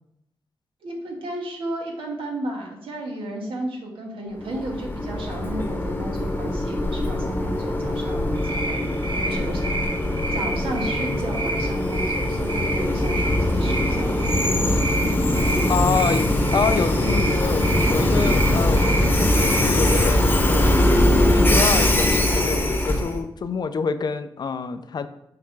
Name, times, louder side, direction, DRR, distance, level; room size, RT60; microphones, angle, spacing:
voice 1, 0.8-8.9 9.2-9.7 10.3-14.2 15.3-15.7, right 1 dB, 85° right, 0 dB, 1.5 m, -33 dB
Train, 4.4-23.2, left 1 dB, 20° left, 0.9 m, -21 dB
sound 1, 8.3-20.0, right 2 dB, 65° right, 0.8 m, -31 dB
voice 2, 15.7-20.7 21.1-25.1, left 5 dB, 50° left, 11 dB, 0.5 m, -27 dB
6.5 x 3.5 x 4.6 m, 0.79 s
cardioid pair, 95°, 9 cm